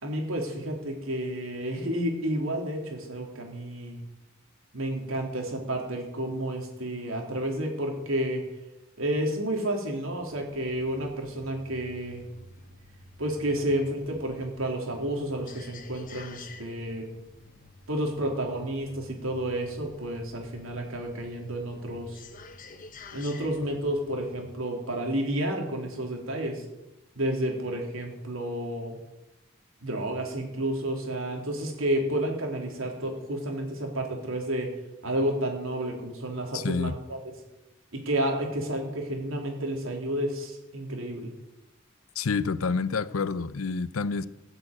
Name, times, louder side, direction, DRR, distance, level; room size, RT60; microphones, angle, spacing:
voice 1, 0.0-4.0 4.7-8.4 9.0-12.2 13.2-17.1 17.9-22.2 23.1-26.6 27.2-29.0 29.8-34.8 35.0-37.3 37.9-41.3, right 1 dB, 75° right, 3.5 m, -31 dB
sound 1, 10.2-24.5, left 3 dB, 40° left, 1.2 m, -50 dB
voice 2, 36.5-37.0 42.2-44.3, left 4 dB, 85° left, 0.6 m, -28 dB
16.0 x 6.9 x 8.9 m
head